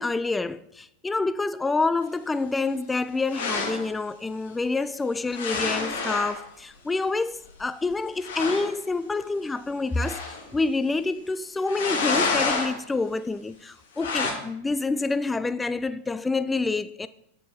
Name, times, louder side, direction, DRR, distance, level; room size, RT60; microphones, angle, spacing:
voice 1, 0.0-17.1, left 3 dB, 10° left, 0.3 m, -27 dB
sound 1, 3.3-3.9 5.3-6.4 7.6-7.7 7.9-8.0 8.2-8.7 10.0-10.5 11.7-12.7 14.0-14.3, left 4 dB, 65° left, 2.0 m, -28 dB
9.3 x 6.8 x 4.4 m
figure-of-eight pair, 90°, 0 cm